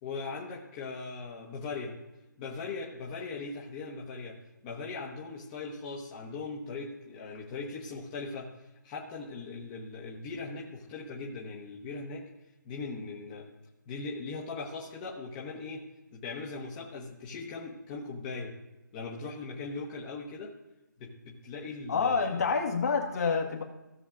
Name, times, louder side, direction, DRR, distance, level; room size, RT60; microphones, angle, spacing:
voice 1, 0.0-2.0 2.4-4.4 4.6-8.5 8.8-12.3 12.6-13.5 13.9-15.8 16.1-18.5 18.9-20.5 21.0-22.4, left 4 dB, 25° left, -3 dB, 1.2 m, -39 dB
voice 2, 21.9-23.6, left 5 dB, 50° left, 1 dB, 1.6 m, -27 dB
16.5 x 7.0 x 2.5 m, 1.0 s
figure-of-eight pair, 155°, 10 cm